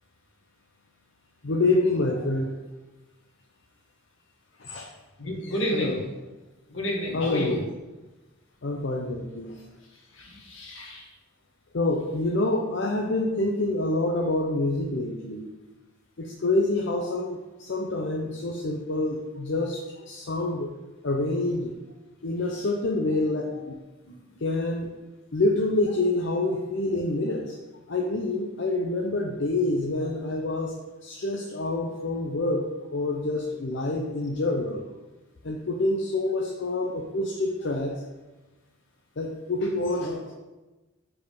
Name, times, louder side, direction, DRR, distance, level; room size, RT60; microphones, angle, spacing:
voice 1, 1.4-2.5 4.6-4.9 5.7-6.0 7.1-7.6 8.6-9.6 11.7-15.5 16.2-20.7 21.0-21.7 22.2-23.8 24.4-24.9 25.3-27.6 27.9-30.7 31.0-34.9 35.4-37.9 39.2-40.3, left 2 dB, 60° left, 1 dB, 0.6 m, -27 dB
voice 2, 5.2-6.0 6.7-7.6 10.1-11.1 24.1-24.2, equal, 80° left, -1 dB, 1.7 m, -31 dB
5.2 x 4.8 x 5.3 m, 1.1 s
head